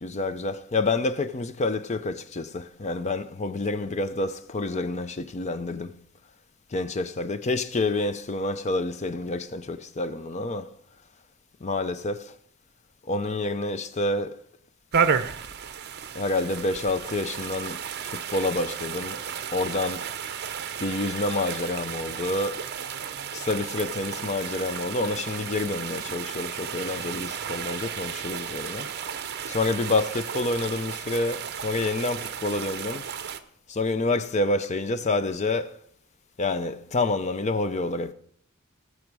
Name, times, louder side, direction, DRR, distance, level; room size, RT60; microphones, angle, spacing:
voice 1, 0.0-5.9 6.7-10.7 11.6-12.4 13.0-14.3 16.1-17.8 18.1-19.2 19.5-20.1 20.8-22.7 23.3-28.9 29.5-33.1 33.7-35.8 36.4-38.1, left 2 dB, 35° left, 0.5 m, -28 dB
sound 1, 14.9-33.4, right 7 dB, 50° right, 0.7 m, -33 dB
18.5 x 6.4 x 4.7 m
head